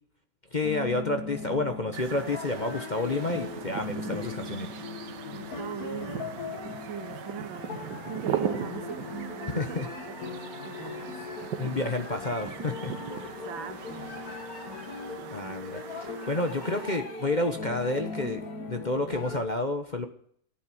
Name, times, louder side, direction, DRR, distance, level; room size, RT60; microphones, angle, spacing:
voice 1, 0.5-4.7 9.6-9.9 11.6-13.4 15.3-18.4 18.7-20.1, left 2 dB, 30° left, 1.0 m, -30 dB
sound 1, 0.6-19.4, left 4 dB, 50° left, 2.3 m, -39 dB
sound 2, 1.9-17.0, right 9 dB, 65° right, 1.5 m, -39 dB
voice 2, 5.3-6.4 6.8-11.2 11.6-11.8 13.2-14.1 15.2-15.6, right 7 dB, 85° right, 2.1 m, -41 dB
14.5 x 9.1 x 7.8 m
omnidirectional pair, 2.1 m